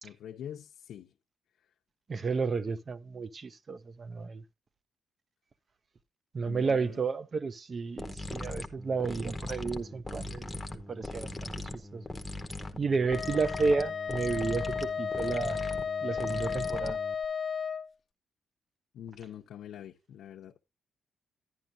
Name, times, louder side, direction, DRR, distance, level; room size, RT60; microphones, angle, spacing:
voice 1, 0.0-1.1 6.5-7.0 18.9-20.6, left 10 dB, 85° left, 0.7 m, -45 dB
voice 2, 2.1-4.4 6.3-12.0 12.7-15.6 16.0-17.0, right 4 dB, 30° right, 0.5 m, -32 dB
sound 1, 8.0-17.3, left 1 dB, 5° left, 0.9 m, -40 dB
Wind instrument woodwind instrument, 13.1-17.9, left 6 dB, 35° left, 0.5 m, -34 dB
11.0 x 10.5 x 2.6 m
wide cardioid pair, 170°, 0 cm